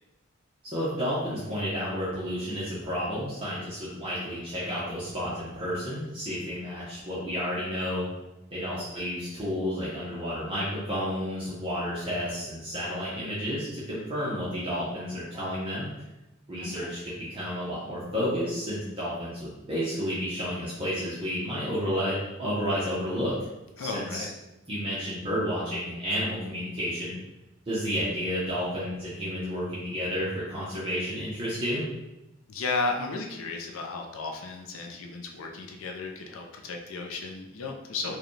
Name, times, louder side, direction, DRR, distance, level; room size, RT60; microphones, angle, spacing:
voice 1, 0.6-8.0 8.5-15.9 16.5-23.3 23.8-24.1 24.7-27.2 27.7-31.8, equal, 25° right, -8 dB, 0.8 m, -31 dB
voice 2, 16.6-16.9 23.8-24.3 32.5-38.2, left 3 dB, 70° left, 2 dB, 0.4 m, -34 dB
4.8 x 2.2 x 3.1 m, 0.97 s
head